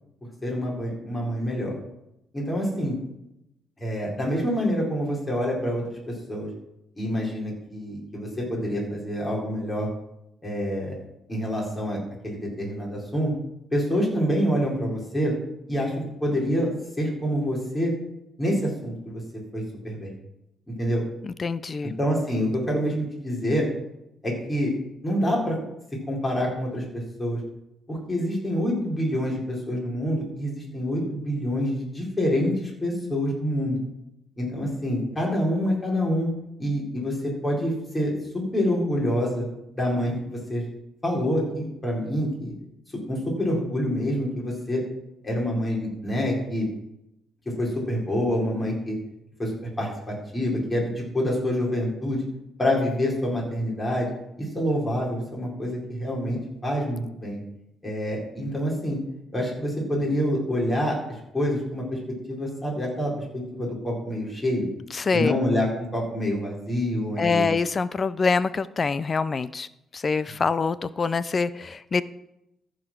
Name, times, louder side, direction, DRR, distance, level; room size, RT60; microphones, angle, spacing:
voice 1, 0.4-1.7 2.3-3.0 3.8-6.5 7.0-9.9 10.4-11.0 11.3-12.0 12.2-13.3 13.7-15.4 15.7-15.9 16.2-16.7 17.0-17.9 18.4-19.2 19.5-20.1 20.8-21.0 22.0-23.7 24.2-24.7 25.0-25.6 26.1-27.4 27.9-32.5 32.8-33.8 34.4-36.3 36.6-39.4 39.7-40.6 41.0-42.5 43.1-44.8 45.2-46.7 47.6-49.0 49.4-49.5 49.8-52.3 52.6-54.1 54.4-57.4 57.8-59.0 59.3-61.0 61.3-62.0 62.3-64.7 65.1-67.4, equal, 20° left, -3 dB, 4.4 m, -26 dB
voice 2, 21.2-21.9 64.9-65.3 67.2-69.7 69.9-72.0, left 4 dB, 35° left, 16 dB, 0.4 m, -25 dB
14.0 x 5.0 x 6.1 m, 0.84 s
cardioid pair, 90°, 0 cm